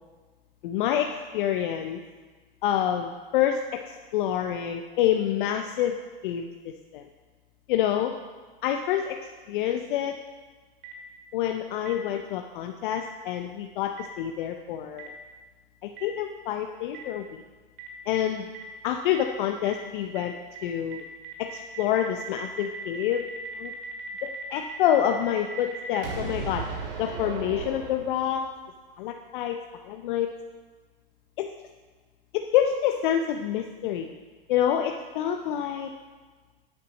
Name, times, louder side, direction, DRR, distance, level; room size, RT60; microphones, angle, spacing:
voice 1, 0.6-2.0 2.6-6.0 6.2-7.0 7.7-8.1 8.6-9.2 9.5-10.2 11.3-15.1 15.8-17.4 18.1-18.5 18.8-20.3 20.6-21.0 21.4-23.3 23.5-23.7 24.2-26.6 27.0-28.4 29.0-29.6 29.8-30.3 31.4-31.5 32.3-34.1 34.5-35.9, left 10 dB, 60° left, 4 dB, 0.7 m, -27 dB
Boom, 10.8-10.9 11.8-11.9 12.9-13.0 14.0-14.1 15.0-15.1 16.0-16.1 16.9-17.0 17.8-17.9 18.5-18.6 19.1-19.2 19.6-19.7 20.1-20.2 20.5-20.6 20.9-28.5, right 5 dB, 65° right, 2.3 m, -37 dB
9.4 x 8.2 x 4.1 m, 1.4 s
hypercardioid pair, 110°, 29 cm